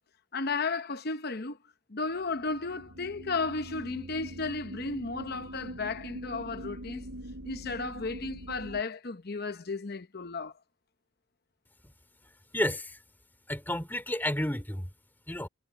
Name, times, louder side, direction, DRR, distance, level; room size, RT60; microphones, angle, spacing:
voice 1, 0.3-1.6 1.9-7.0 7.4-10.5, left 3 dB, 45° left, 0.9 m, -34 dB
sound 1, 2.0-8.8, right 1 dB, 90° right, 7.9 m, -43 dB
voice 2, 12.5-13.0 13.5-14.9 15.3-15.5, left 1 dB, 10° left, 2.7 m, -31 dB
head